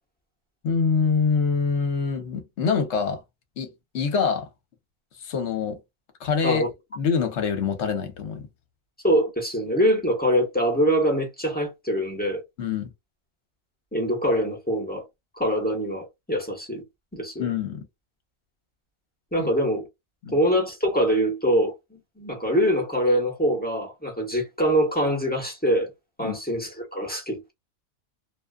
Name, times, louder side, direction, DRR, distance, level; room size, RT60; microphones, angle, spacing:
voice 1, 0.6-3.2 3.6-3.7 3.9-4.5 5.2-5.8 6.2-6.6 7.0-8.5 12.6-12.9 17.4-17.9 19.4-19.5 20.2-20.3 26.2-26.4, left 5 dB, 60° left, 1.0 m, -25 dB
voice 2, 9.0-12.4 13.9-15.0 15.4-16.8 17.1-17.5 19.3-19.8 20.3-25.9 26.2-27.5, equal, 10° left, 0.8 m, -24 dB
2.5 x 2.2 x 2.3 m
omnidirectional pair, 1.5 m